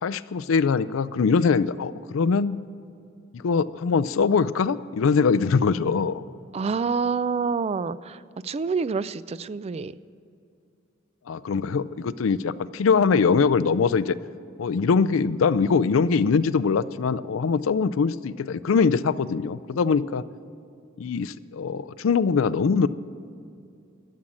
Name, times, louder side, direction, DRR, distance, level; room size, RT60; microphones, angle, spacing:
voice 1, 0.0-2.6 3.3-6.2 11.3-14.2 14.6-20.2 21.0-22.9, left 5 dB, 75° left, 17 dB, 0.4 m, -22 dB
voice 2, 6.5-9.9, right 5 dB, 30° right, 17 dB, 0.3 m, -27 dB
12.5 x 7.5 x 8.7 m, 2.5 s
head